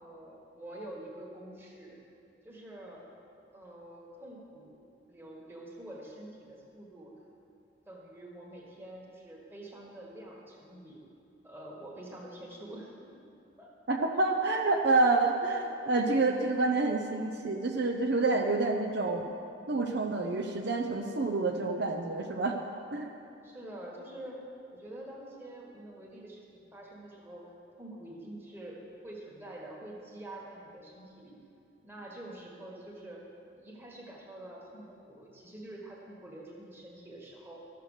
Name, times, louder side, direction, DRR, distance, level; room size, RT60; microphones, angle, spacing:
voice 1, 0.0-2.0 2.4-3.1 3.5-4.8 5.1-7.1 7.9-11.0 11.4-13.3 13.6-13.7 14.2-14.3 23.4-24.4 24.7-31.4 31.8-33.2 33.5-37.7, right 1 dB, 10° right, -3 dB, 1.5 m, -47 dB
voice 2, 13.9-19.2 19.7-22.6 22.9-23.1, right 3 dB, 60° right, 3 dB, 0.6 m, -28 dB
12.5 x 6.8 x 6.5 m, 2.6 s
head